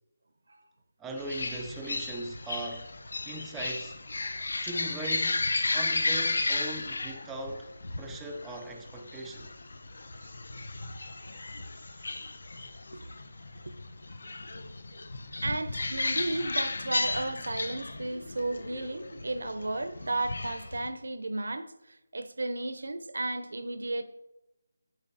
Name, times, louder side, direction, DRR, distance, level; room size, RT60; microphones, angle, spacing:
voice 1, 1.0-2.9 3.3-4.0 4.6-5.5 5.7-7.7 8.0-9.5, right 2 dB, 5° right, 0.4 m, -39 dB
sound 1, 1.2-20.9, left 2 dB, 65° left, 0.6 m, -34 dB
voice 2, 15.4-24.0, right 2 dB, 80° right, 0.6 m, -34 dB
7.3 x 7.1 x 2.6 m
figure-of-eight pair, 170°, 0 cm